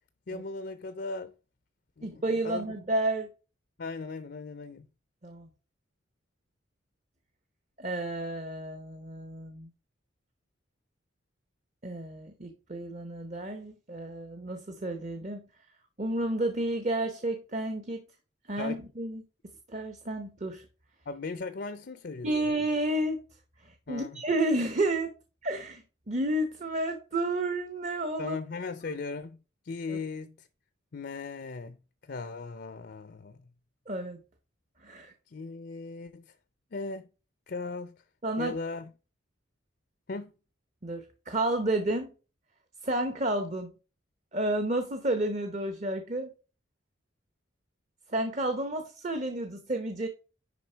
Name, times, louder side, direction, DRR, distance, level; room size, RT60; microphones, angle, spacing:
voice 1, 0.3-1.3 2.0-2.6 3.8-4.9 18.6-18.8 21.1-22.3 23.9-24.2 28.2-29.4 29.6-30.5 30.9-31.8 32.0-33.4 35.3-36.3 36.7-37.1 37.5-37.9 38.4-38.9 40.1-40.3, left 3 dB, 55° left, 0.5 m, -38 dB
voice 2, 2.0-3.3 5.2-5.5 7.8-9.7 11.8-15.4 16.0-18.0 18.5-19.2 19.7-20.7 22.2-23.2 23.6-25.1 25.4-28.4 29.9-30.0 33.9-34.2 34.8-35.1 38.2-38.6 40.8-42.1 42.8-43.7 44.3-46.3 48.1-50.1, right 1 dB, 35° right, 0.9 m, -31 dB
10.5 x 3.7 x 4.5 m
head